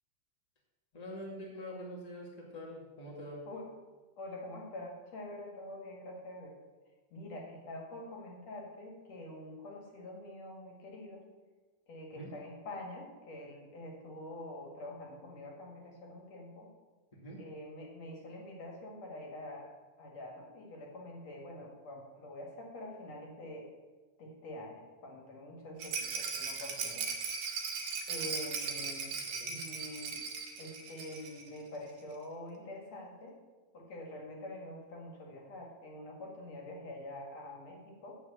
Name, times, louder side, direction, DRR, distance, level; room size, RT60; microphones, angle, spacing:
voice 1, 0.9-3.5 12.1-12.3 17.1-17.4 29.4-29.6, equal, 15° left, -3 dB, 1.7 m, -45 dB
voice 2, 4.2-6.6 7.1-11.2 11.9-16.7 17.4-19.7 20.0-23.7 24.2-27.1 28.1-30.2 30.6-33.4 33.7-38.1, left 1 dB, 60° left, 0 dB, 2.8 m, -46 dB
Rattle, 25.8-31.5 31.8-31.9 32.1-32.2, right 5 dB, 75° right, 2.7 m, -38 dB
8.1 x 5.8 x 7.7 m, 1.3 s
omnidirectional pair, 3.6 m